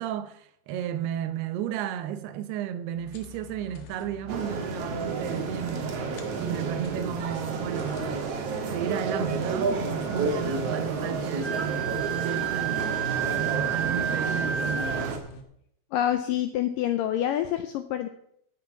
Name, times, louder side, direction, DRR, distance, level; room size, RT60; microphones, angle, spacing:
voice 1, 0.0-8.1 8.5-12.8 13.3-14.8, right 9 dB, 85° right, 2.9 m, -33 dB
sound 1, 3.0-15.4, right 2 dB, 70° left, 2.9 m, -43 dB
sound 2, 4.3-15.2, right 4 dB, 55° right, 1.9 m, -31 dB
Wind instrument woodwind instrument, 11.4-15.1, right 8 dB, 5° right, 3.1 m, -30 dB
voice 2, 15.9-18.1, left 11 dB, 85° left, 2.0 m, -27 dB
16.0 x 6.8 x 5.8 m
omnidirectional pair, 4.6 m